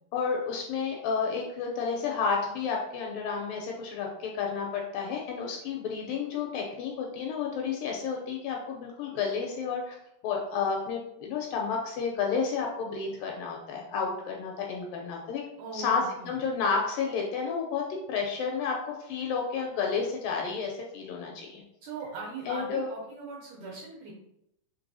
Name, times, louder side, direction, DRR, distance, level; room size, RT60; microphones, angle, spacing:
voice 1, 0.1-10.0 10.2-15.4 15.7-21.6 22.5-22.9, left 5 dB, 80° left, 0 dB, 2.1 m, -31 dB
voice 2, 15.6-16.4 21.8-24.1, right 3 dB, 70° right, -4 dB, 1.9 m, -40 dB
5.3 x 3.1 x 2.6 m, 0.79 s
omnidirectional pair, 4.3 m